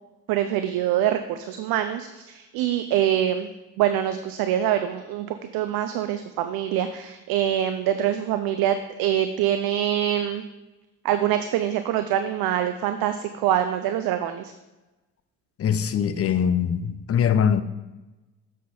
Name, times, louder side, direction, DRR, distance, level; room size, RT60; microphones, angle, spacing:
voice 1, 0.3-3.5 3.8-10.4 11.0-14.5, right 11 dB, 60° right, 9 dB, 0.6 m, -24 dB
voice 2, 15.6-17.6, left 8 dB, 35° left, 12 dB, 0.6 m, -22 dB
7.5 x 5.1 x 4.1 m, 1.1 s
hypercardioid pair, 50°, 41 cm